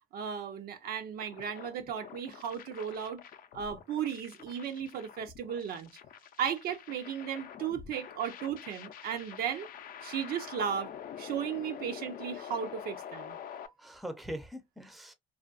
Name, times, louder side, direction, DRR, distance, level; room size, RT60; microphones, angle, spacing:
voice 1, 0.1-3.2 3.5-5.9 6.4-9.7 10.0-10.9 11.2-13.4, right 8 dB, 65° right, 0.6 m, -35 dB
sound 1, 1.2-13.7, left 9 dB, 55° left, 0.5 m, -46 dB
voice 2, 13.4-15.1, equal, ahead, 0.5 m, -42 dB
2.4 x 2.2 x 2.4 m
cardioid pair, 110°, 17 cm